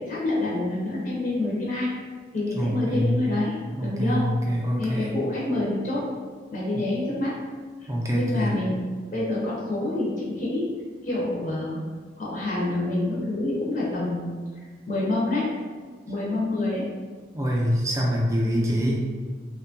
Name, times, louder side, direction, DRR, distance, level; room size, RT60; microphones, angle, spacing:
voice 1, 0.0-1.9 2.3-3.5 3.8-4.3 4.8-6.0 6.5-7.3 7.8-8.8 9.1-10.7 11.0-11.8 12.2-14.3 14.9-15.5 16.1-16.9, left 2 dB, 45° left, -6 dB, 0.5 m, -27 dB
voice 2, 2.5-3.2 3.7-5.1 7.9-8.6 16.3-16.4 17.3-19.0, equal, 15° right, -3 dB, 0.4 m, -25 dB
2.6 x 2.2 x 2.6 m, 1.5 s
head